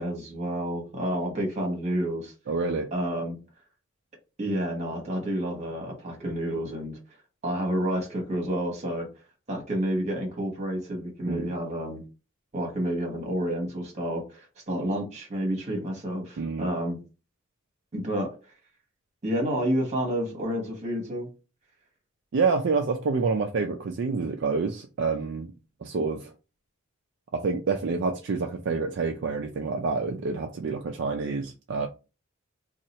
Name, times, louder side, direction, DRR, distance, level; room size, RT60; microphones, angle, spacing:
voice 1, 0.0-2.3 2.9-3.4 4.4-7.0 7.4-9.1 9.5-12.0 12.5-17.0 17.9-18.3 19.2-21.3, equal, 35° right, 1.2 m, -29 dB
voice 2, 2.5-2.9 11.3-11.5 16.4-16.7 22.3-25.5 25.8-26.3 27.3-31.9, right 4 dB, 60° right, 0.4 m, -28 dB
2.8 x 2.4 x 4.1 m
head